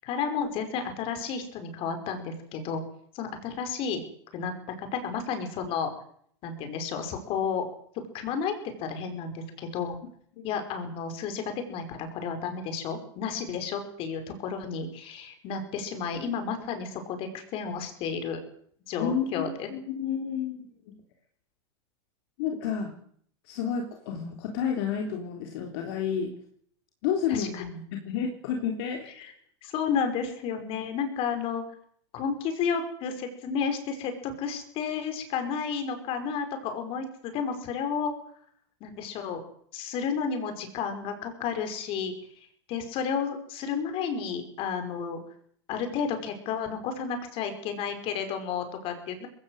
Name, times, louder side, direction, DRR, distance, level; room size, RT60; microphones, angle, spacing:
voice 1, 0.0-2.8 3.1-4.0 4.3-5.9 6.4-7.7 8.1-8.5 8.8-10.0 10.4-11.4 11.7-18.4 18.9-19.7 27.3-27.8 29.2-29.3 29.6-31.6 32.1-38.1 38.8-39.4 39.7-42.1 42.7-45.2 45.7-49.3, left 6 dB, 40° left, 7 dB, 5.6 m, -32 dB
voice 2, 19.0-21.0 22.4-22.9 23.5-26.3 27.0-29.1, left 7 dB, 55° left, 2 dB, 3.5 m, -31 dB
21.0 x 16.5 x 8.1 m, 0.63 s
supercardioid pair, 145°, 15 cm